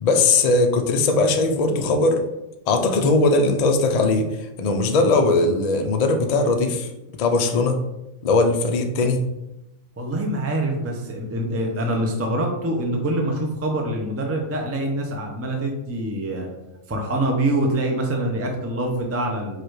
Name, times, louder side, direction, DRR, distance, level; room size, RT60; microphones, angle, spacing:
voice 1, 0.0-2.2 2.7-4.3 4.6-6.9 7.1-7.8 8.2-9.2, left 3 dB, 70° left, 5 dB, 0.3 m, -19 dB
voice 2, 10.0-16.5 16.9-19.6, right 1 dB, 20° right, 1 dB, 0.4 m, -25 dB
4.8 x 2.4 x 4.6 m, 0.92 s
omnidirectional pair, 1.4 m